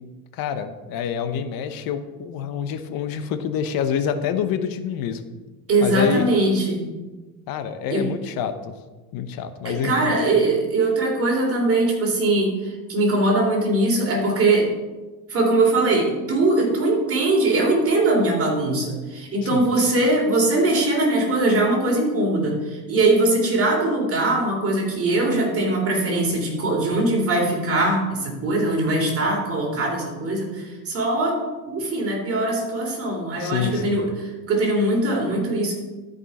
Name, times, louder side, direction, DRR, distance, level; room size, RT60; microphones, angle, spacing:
voice 1, 0.3-5.2 5.8-6.3 7.5-8.7 9.1-10.2 19.4-19.6 33.4-34.0, left 8 dB, 55° left, 10 dB, 0.9 m, -27 dB
voice 2, 5.7-6.8 7.9-8.1 9.6-14.7 15.3-31.4 31.7-35.7, right 2 dB, 30° right, -1 dB, 3.1 m, -21 dB
13.0 x 5.4 x 4.2 m, 1.2 s
supercardioid pair, 120°, 42 cm